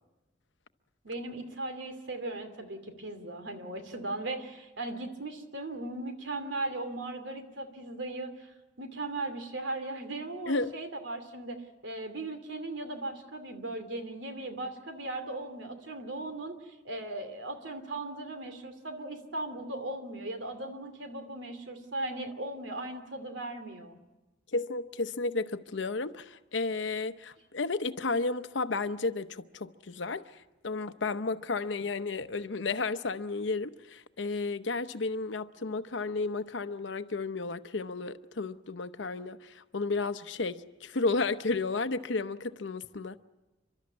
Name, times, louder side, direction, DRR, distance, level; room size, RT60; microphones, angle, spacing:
voice 1, 1.0-8.3 8.8-24.0, right 2 dB, 80° right, 2.6 m, -38 dB
voice 2, 24.5-30.2 30.6-43.2, left 3 dB, 80° left, 0.8 m, -32 dB
29.5 x 12.5 x 9.7 m
head